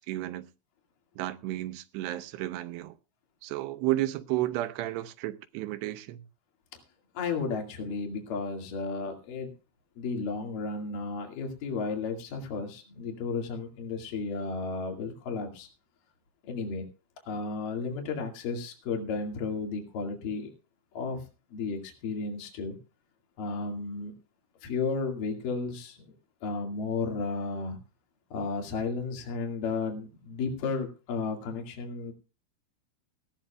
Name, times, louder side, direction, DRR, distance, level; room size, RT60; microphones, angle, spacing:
voice 1, 0.1-0.5 1.2-2.9 3.4-6.2, right 15 dB, 85° right, 2.8 m, -32 dB
voice 2, 7.2-9.5 10.0-15.7 16.5-16.8 17.3-20.5 21.0-21.2 21.5-22.8 23.4-24.1 24.6-26.0 26.4-27.8 28.3-32.1, left 4 dB, 60° left, 3.6 m, -33 dB
19.0 x 14.0 x 2.3 m
omnidirectional pair, 4.7 m